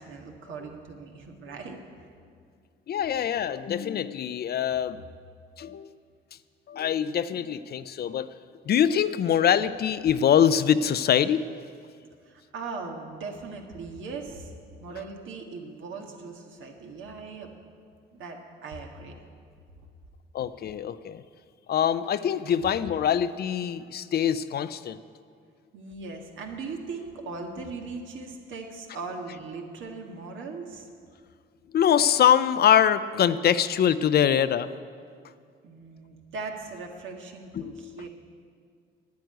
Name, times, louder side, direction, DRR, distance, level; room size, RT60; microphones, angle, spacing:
voice 1, 0.0-1.8 12.2-14.5 14.8-17.5 18.1-19.1 25.7-30.9 35.6-38.1, right 4 dB, 75° right, 2 dB, 1.7 m, -39 dB
voice 2, 2.9-5.0 5.6-5.9 6.7-8.3 8.7-11.4 20.3-21.2 21.7-25.0 31.7-34.7 37.5-38.1, left 9 dB, 55° left, 14 dB, 0.5 m, -24 dB
9.4 x 9.4 x 9.0 m, 2.2 s
cardioid pair, 90°, 20 cm